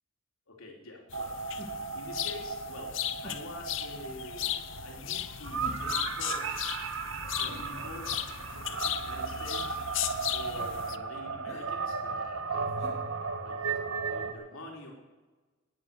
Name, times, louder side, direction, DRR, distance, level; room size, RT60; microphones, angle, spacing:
voice 1, 0.5-1.3 1.9-3.0 3.2-4.6 4.8-6.6 7.4-8.1 8.7-9.8 10.3-12.8 13.4-14.9, left 2 dB, 85° left, 0 dB, 3.7 m, -46 dB
sound 1, 1.1-11.0, left 12 dB, 65° left, 0.6 m, -36 dB
sound 2, 1.1-14.3, right 5 dB, 80° right, 1.5 m, -35 dB
sound 3, 1.6-2.0 3.2-3.6 5.6-6.1 7.5-8.2 9.6-10.0 11.4-11.7 12.8-13.7 14.0-14.1, left 1 dB, 30° left, 3.0 m, -48 dB
18.5 x 9.3 x 6.9 m, 1.2 s
head